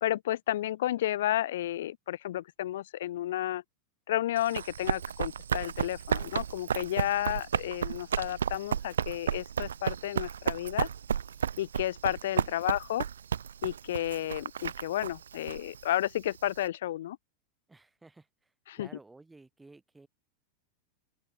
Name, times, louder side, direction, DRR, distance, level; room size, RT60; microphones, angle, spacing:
voice 1, 0.0-3.6 4.1-10.9 11.6-13.1 13.6-17.2 18.7-18.9, left 13 dB, 60° left, 0.4 m, -32 dB
Run, 4.4-16.6, right 8 dB, 65° right, 0.8 m, -33 dB
voice 2, 17.7-20.1, right 3 dB, 10° right, 2.7 m, -55 dB
open air
figure-of-eight pair, 90°, 0 cm